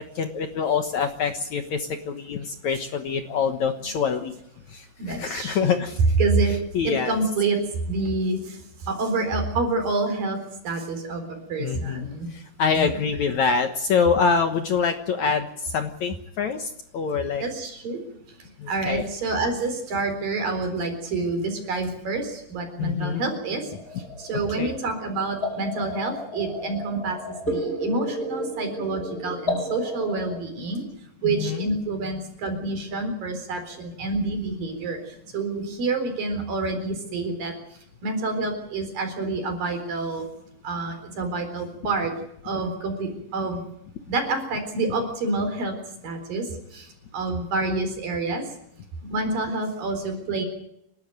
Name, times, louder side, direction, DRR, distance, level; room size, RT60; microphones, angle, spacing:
voice 1, 0.2-4.3 4.7-6.0 6.7-7.2 11.6-17.4 18.6-19.1 22.8-23.2 24.6-24.8 31.2-31.7, left 6 dB, 60° left, 7 dB, 2.1 m, -25 dB
voice 2, 5.0-5.8 6.2-6.6 6.8-8.6 8.9-12.3 12.7-12.9 17.4-18.0 18.7-23.7 24.2-30.8 31.2-35.0 35.3-37.5 38.0-40.3 40.6-42.1 42.4-43.6 44.1-45.8 46.0-46.9 47.1-48.4 49.1-50.4, right 3 dB, 60° right, 6 dB, 5.7 m, -27 dB
sound 1, 23.7-30.4, left 1 dB, 15° left, 8.3 m, -32 dB
28.5 x 12.5 x 9.2 m, 0.77 s
omnidirectional pair, 4.4 m